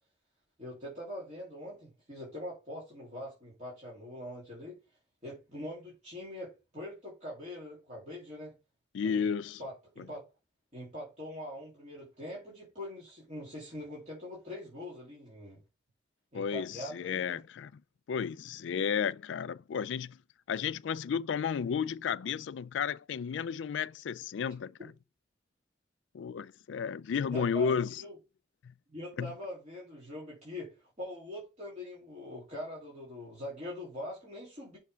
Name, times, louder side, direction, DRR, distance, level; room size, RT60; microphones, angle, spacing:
voice 1, 0.6-4.8 5.2-8.5 9.0-9.3 9.6-10.2 10.7-15.6 16.3-17.4 27.3-28.2 28.9-34.8, left 1 dB, 40° right, 2.8 m, -43 dB
voice 2, 8.9-9.6 16.3-17.8 18.1-20.2 20.5-24.9 26.1-28.0 29.2-29.3, left 6 dB, 80° left, 0.3 m, -33 dB
6.6 x 3.5 x 5.5 m
head